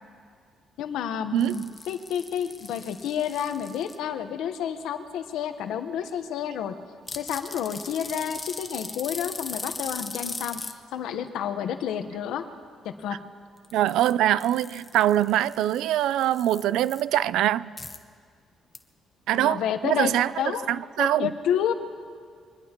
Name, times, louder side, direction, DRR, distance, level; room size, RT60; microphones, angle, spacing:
voice 1, 0.8-6.7 7.1-10.6 10.9-12.4 12.8-13.2 19.4-20.7 21.0-21.7, left 9 dB, 85° left, 1.0 m, -30 dB
voice 2, 1.3-1.7 13.7-17.7 19.3-20.3 20.7-21.3, right 12 dB, 90° right, 0.3 m, -23 dB
sound 1, 1.4-4.0 7.1-10.7 13.6-14.1 14.4-17.0 17.8-18.0 18.7-18.8, left 3 dB, 25° left, 1.0 m, -39 dB
24.0 x 20.5 x 3.0 m
cardioid pair, 90°, 0 cm